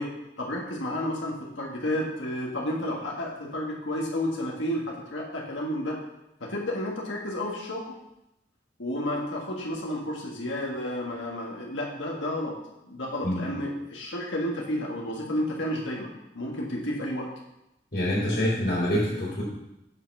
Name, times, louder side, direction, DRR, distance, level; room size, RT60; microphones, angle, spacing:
voice 1, 0.0-6.0 6.4-8.0 8.8-12.5 12.8-17.3, left 1 dB, 90° left, -1 dB, 1.8 m, -31 dB
voice 2, 17.9-19.4, left 1 dB, 55° left, -9 dB, 3.2 m, -26 dB
8.0 x 5.9 x 5.5 m, 0.89 s
head